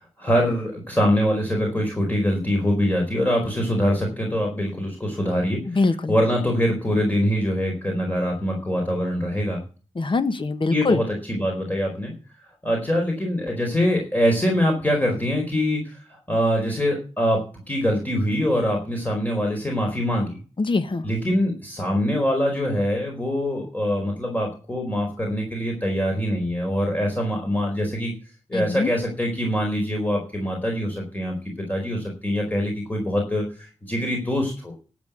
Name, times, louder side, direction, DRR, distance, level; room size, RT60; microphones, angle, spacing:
voice 1, 0.0-5.6 6.1-9.6 10.7-12.1 12.6-20.4 21.0-28.1 28.5-31.4 31.7-34.7, equal, 15° left, 1 dB, 4.3 m, -24 dB
voice 2, 5.7-6.1 9.9-11.0 20.6-21.1 28.5-28.9, left 3 dB, 40° left, 11 dB, 1.3 m, -23 dB
12.5 x 8.2 x 8.2 m, 0.36 s
wide cardioid pair, 135°, 12 cm